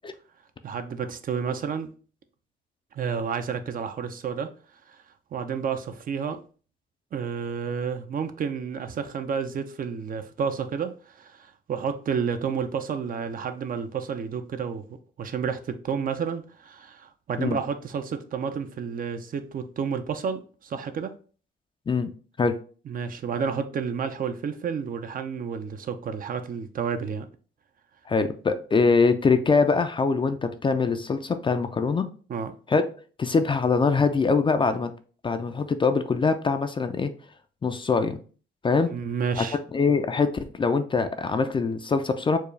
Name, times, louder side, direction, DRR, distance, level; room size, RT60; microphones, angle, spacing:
voice 1, 0.6-1.9 2.9-4.5 4.9-5.0 5.3-6.4 7.1-14.8 15.2-21.1 22.9-27.3 32.3-32.5 38.9-39.6, right 6 dB, 45° right, 0.5 m, -30 dB
voice 2, 28.1-32.1 32.7-32.8 33.2-34.9 35.2-37.1 37.6-38.2 38.6-38.9 39.4-42.4, left 4 dB, 25° left, 0.4 m, -23 dB
4.5 x 2.3 x 3.2 m
cardioid pair, 90°, 20 cm